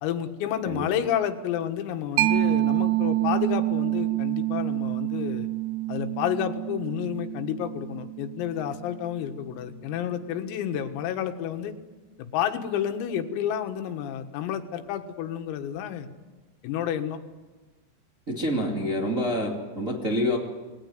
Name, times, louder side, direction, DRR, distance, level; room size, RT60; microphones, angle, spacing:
voice 1, 0.0-5.5 5.9-11.7 12.2-16.1 16.6-17.2, left 10 dB, 85° left, 6 dB, 4.2 m, -30 dB
Mallet percussion, 2.2-9.4, right 16 dB, 75° right, 2.6 m, -27 dB
voice 2, 18.3-20.4, equal, 25° right, -1 dB, 1.8 m, -27 dB
28.0 x 20.5 x 9.4 m, 1.3 s
omnidirectional pair, 6.0 m